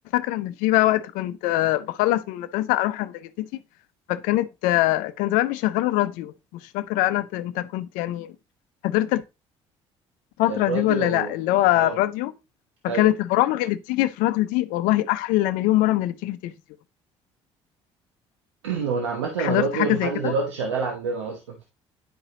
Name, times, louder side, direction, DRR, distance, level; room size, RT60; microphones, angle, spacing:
voice 1, 0.1-3.5 4.1-6.3 6.7-8.3 8.8-9.2 10.4-12.3 12.8-16.5 19.4-20.3, left 16 dB, 70° left, 0.6 m, -23 dB
voice 2, 10.5-11.3 11.7-12.0 12.9-13.1 18.6-21.7, right 5 dB, 85° right, 1.1 m, -27 dB
10.0 x 4.8 x 2.9 m
hypercardioid pair, 55°, 15 cm